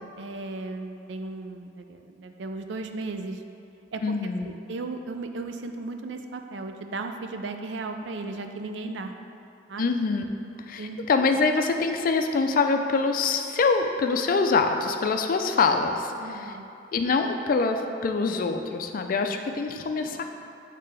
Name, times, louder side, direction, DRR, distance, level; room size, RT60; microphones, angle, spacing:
voice 1, 0.2-3.4 3.9-4.0 4.4-9.1 9.7-9.9 10.8-11.0 16.2-16.7, right 3 dB, 75° right, 6 dB, 0.4 m, -35 dB
voice 2, 4.0-4.5 9.8-10.2 10.7-16.5 16.9-20.2, left 4 dB, 50° left, 6 dB, 0.4 m, -24 dB
8.5 x 3.3 x 3.3 m, 2.8 s
head